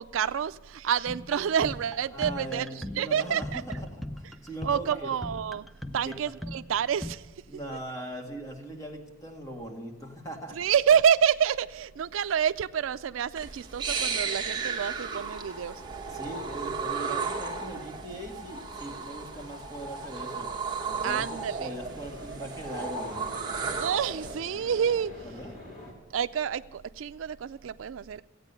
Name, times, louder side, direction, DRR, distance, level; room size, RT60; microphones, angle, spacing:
voice 1, 0.0-3.6 4.6-5.7 5.9-7.6 10.6-15.8 21.0-21.7 23.8-25.3 26.1-28.2, right 8 dB, 75° right, 0.4 m, -28 dB
sound 1, 1.1-7.1, left 1 dB, ahead, 0.4 m, -40 dB
voice 2, 2.1-5.1 6.0-6.2 7.5-10.6 16.1-20.5 20.9-23.2 25.2-25.5, right 1 dB, 15° left, 1.9 m, -40 dB
sound 2, 13.4-24.4, right 5 dB, 25° right, 1.3 m, -34 dB
sound 3, 15.7-25.9, left 1 dB, 45° left, 3.9 m, -48 dB
15.5 x 8.9 x 6.8 m
head